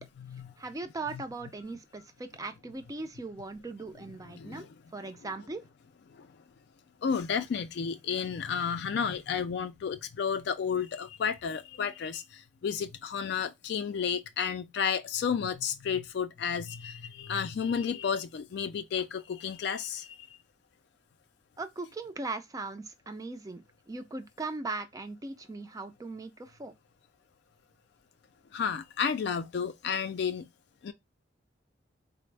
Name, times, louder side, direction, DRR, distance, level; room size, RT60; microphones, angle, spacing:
voice 1, 0.0-0.5 1.1-1.2 4.2-5.1 6.1-6.3 7.0-20.3 28.5-30.5 30.8-30.9, left 7 dB, 65° left, 0.3 m, -32 dB
voice 2, 0.6-4.7 4.9-5.6 21.6-26.7, right 3 dB, 20° right, 0.4 m, -39 dB
4.0 x 2.0 x 3.2 m
head